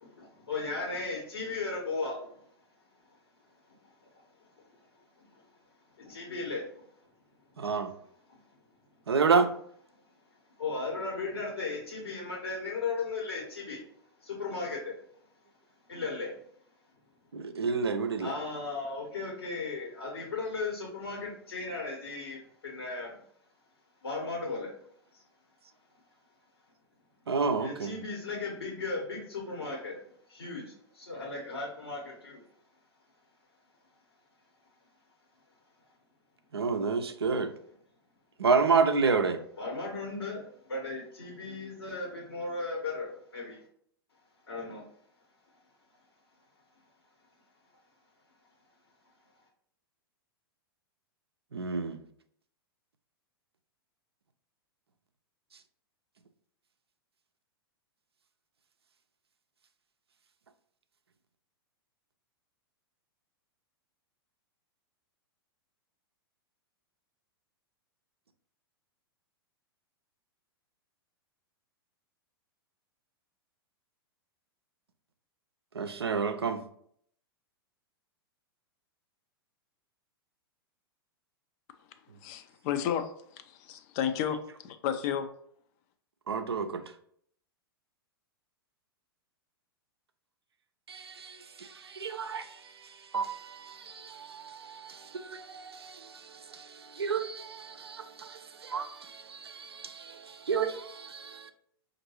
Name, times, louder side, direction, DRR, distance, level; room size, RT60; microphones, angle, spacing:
voice 1, 0.0-2.3 3.7-3.8 5.2-5.4 6.0-6.8 8.3-8.4 10.6-13.8 14.2-14.9 15.9-16.4 18.2-23.2 24.0-24.7 25.1-25.2 27.6-30.0 30.3-32.4 39.6-43.6 44.5-44.8, left 3 dB, 75° left, 1.3 m, -36 dB
voice 2, 7.6-7.9 9.1-9.5 17.3-18.3 27.3-27.9 36.5-37.5 38.4-39.4 51.5-52.0 75.8-76.6 86.3-86.8 90.9-92.5 93.1-96.1 96.5-96.7 96.9-101.5, right 5 dB, 80° right, 0.5 m, -30 dB
voice 3, 82.2-83.1 83.7-85.3, left 9 dB, 40° left, 0.5 m, -31 dB
5.2 x 2.6 x 2.9 m
figure-of-eight pair, 100°, 13 cm